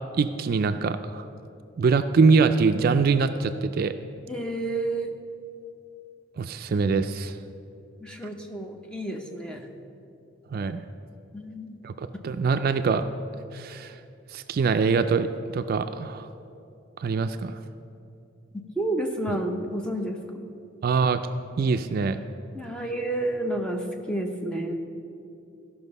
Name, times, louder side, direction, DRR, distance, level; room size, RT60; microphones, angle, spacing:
voice 1, 0.1-1.2 1.8-3.9 6.4-7.4 10.5-10.8 11.8-13.0 13.5-13.9 14.3-15.3 15.5-16.3 17.0-17.6 20.8-21.2 21.6-22.2, right 4 dB, 50° right, 10 dB, 0.3 m, -23 dB
voice 2, 4.3-5.1 8.0-9.7 11.3-11.8 18.8-20.2 22.5-24.8, right 1 dB, 5° left, 2 dB, 0.8 m, -30 dB
14.5 x 5.8 x 5.3 m, 2.6 s
head